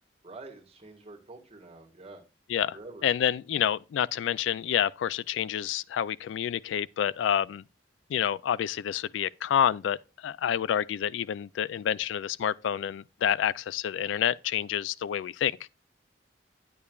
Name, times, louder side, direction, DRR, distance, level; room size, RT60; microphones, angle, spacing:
voice 1, 0.2-2.2 2.7-3.1, right 3 dB, 35° right, 1.7 m, -46 dB
voice 2, 3.0-7.6 8.1-10.0 10.2-15.5, left 9 dB, 85° left, 0.3 m, -28 dB
9.7 x 8.6 x 2.3 m
head